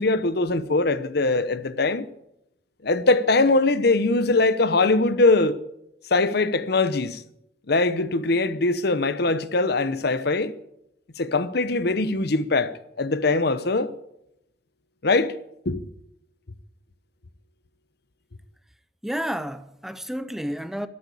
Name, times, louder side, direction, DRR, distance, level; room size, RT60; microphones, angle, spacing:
voice 1, 0.0-2.0 2.8-5.6 6.1-7.2 7.7-10.5 11.2-13.9 15.0-15.3 15.6-15.8, left 3 dB, 60° left, 0.9 m, -22 dB
voice 2, 19.0-20.9, equal, ahead, 0.6 m, -30 dB
13.0 x 12.5 x 8.5 m
head